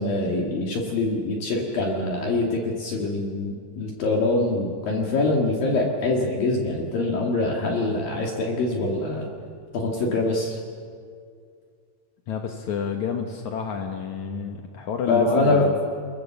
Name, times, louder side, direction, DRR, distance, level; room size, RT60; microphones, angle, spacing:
voice 1, 0.0-9.3 9.7-10.6 15.1-15.7, left 2 dB, 55° left, 0 dB, 3.4 m, -24 dB
voice 2, 12.3-15.8, left 6 dB, 70° left, 3 dB, 1.8 m, -29 dB
29.5 x 20.5 x 7.2 m, 2.2 s
omnidirectional pair, 5.3 m